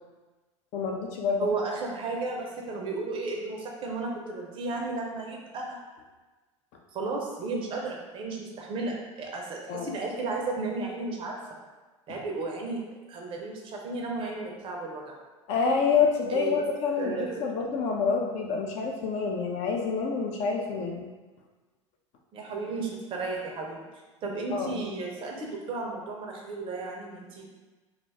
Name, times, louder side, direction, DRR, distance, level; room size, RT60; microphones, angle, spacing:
voice 1, 0.7-1.6 9.7-9.9 12.1-12.2 15.5-21.1 24.5-24.8, left 5 dB, 45° left, 2 dB, 0.4 m, -27 dB
voice 2, 1.4-5.8 6.9-11.4 12.1-12.8 13.1-15.2 16.3-16.6 17.0-17.4 22.3-23.9 24.2-27.6, right 3 dB, 35° right, -1 dB, 0.5 m, -34 dB
2.4 x 2.3 x 3.2 m, 1.2 s
figure-of-eight pair, 80°, 16 cm